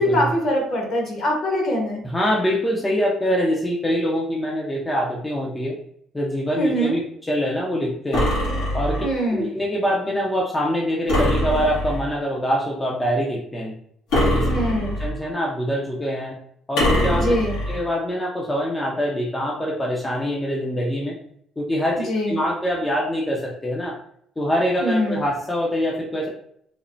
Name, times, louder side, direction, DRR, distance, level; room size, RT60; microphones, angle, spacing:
voice 1, 0.0-2.0 6.6-7.0 9.0-9.5 14.5-15.0 17.1-17.6 21.9-22.4 24.8-25.3, equal, 55° left, -1 dB, 1.1 m, -23 dB
voice 2, 2.0-5.8 6.1-8.3 8.7-9.0 9.3-13.7 14.1-14.5 15.0-16.4 16.7-17.3 17.7-21.2 21.6-24.0 24.4-26.3, equal, 15° left, -3 dB, 0.5 m, -24 dB
sound 1, 8.1-9.2 11.1-12.1 14.1-15.2 16.8-17.8, equal, 90° left, 1.3 m, -22 dB
3.0 x 2.0 x 2.6 m, 0.68 s
cardioid pair, 95°, 0 cm